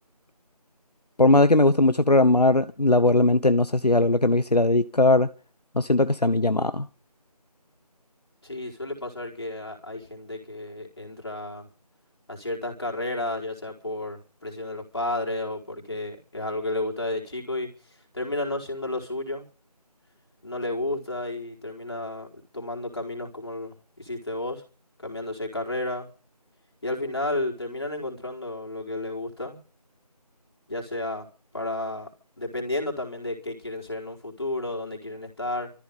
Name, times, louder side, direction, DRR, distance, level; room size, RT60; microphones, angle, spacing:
voice 1, 1.2-5.3 5.7-6.9, left 2 dB, 80° left, 1.1 m, -19 dB
voice 2, 8.4-11.7 12.3-17.7 18.1-19.5 20.4-24.6 25.0-26.1 26.8-29.6 30.7-31.3 31.5-32.1 32.4-35.7, left 2 dB, 40° left, 4.6 m, -32 dB
25.0 x 14.5 x 3.7 m
figure-of-eight pair, 170°, 20 cm